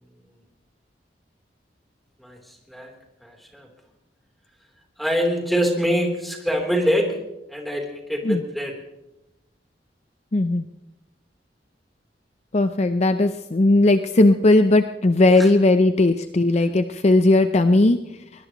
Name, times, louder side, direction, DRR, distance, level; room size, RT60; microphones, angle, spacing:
voice 1, 2.2-2.9 3.2-3.7 5.0-7.1 7.5-8.7 15.2-15.5, equal, ahead, 0 dB, 3.6 m, -24 dB
voice 2, 10.3-10.7 12.5-18.0, left 2 dB, 40° left, 9 dB, 0.6 m, -17 dB
22.5 x 21.0 x 3.1 m, 0.95 s
head